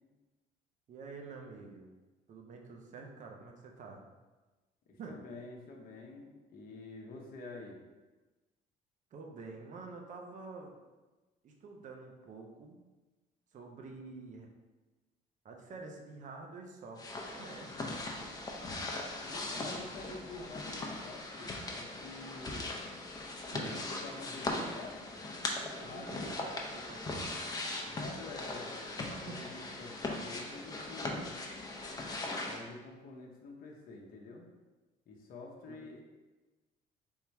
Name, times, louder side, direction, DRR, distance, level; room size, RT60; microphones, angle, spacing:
voice 1, 0.9-1.9 2.3-4.0 5.0-5.2 9.1-10.7 11.4-12.8 13.5-14.5 15.4-17.9 23.5-23.8 25.6-27.4 29.3-29.4 35.7-35.8, right 4 dB, 45° right, 1 dB, 0.7 m, -48 dB
voice 2, 4.9-7.8 19.2-22.7 23.4-25.2 25.8-26.4 27.6-31.3 32.4-34.5 35.1-36.0, left 3 dB, 60° left, -1 dB, 0.8 m, -48 dB
sound 1, 17.0-32.6, left 2 dB, 20° left, 0.6 m, -39 dB
3.6 x 2.9 x 4.5 m, 1.2 s
cardioid pair, 110°, 17 cm